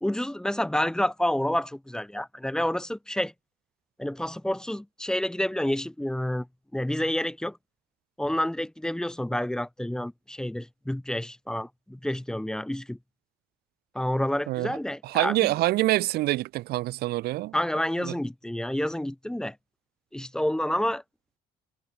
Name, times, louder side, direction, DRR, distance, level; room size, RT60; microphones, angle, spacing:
voice 1, 0.0-3.3 4.0-6.5 6.7-7.6 8.2-13.0 13.9-15.5 17.5-19.5 20.1-21.0, left 1 dB, 5° left, 0.8 m, -29 dB
voice 2, 14.5-14.8 15.0-17.5 18.0-18.1, right 17 dB, 70° right, 0.5 m, -26 dB
cardioid pair, 110°, 17 cm